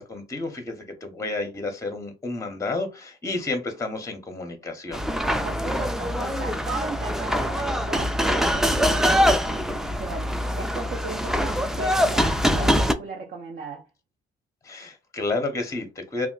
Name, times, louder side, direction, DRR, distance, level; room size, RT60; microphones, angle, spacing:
voice 1, 0.0-5.0 14.6-16.3, left 3 dB, 15° left, 0.7 m, -31 dB
sound 1, 4.9-12.9, equal, ahead, 0.3 m, -23 dB
voice 2, 5.4-13.9, right 3 dB, 50° right, 0.6 m, -36 dB
2.3 x 2.1 x 3.7 m
cardioid pair, 90°, 20 cm